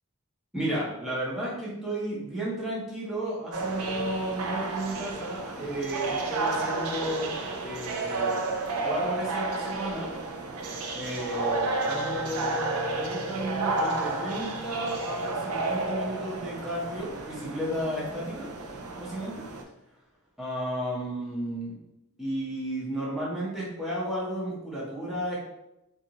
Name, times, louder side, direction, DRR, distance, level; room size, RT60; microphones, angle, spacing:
voice 1, 0.5-7.3 7.6-8.4 8.8-10.1 10.9-12.6 12.9-18.5 19.0-19.4 20.4-21.8 22.2-25.4, right 1 dB, ahead, -7 dB, 0.8 m, -33 dB
sound 1, 3.5-19.6, right 3 dB, 75° right, 0.4 m, -31 dB
sound 2, 11.8-17.4, left 1 dB, 25° left, 0.6 m, -47 dB
2.5 x 2.5 x 2.8 m, 0.88 s
head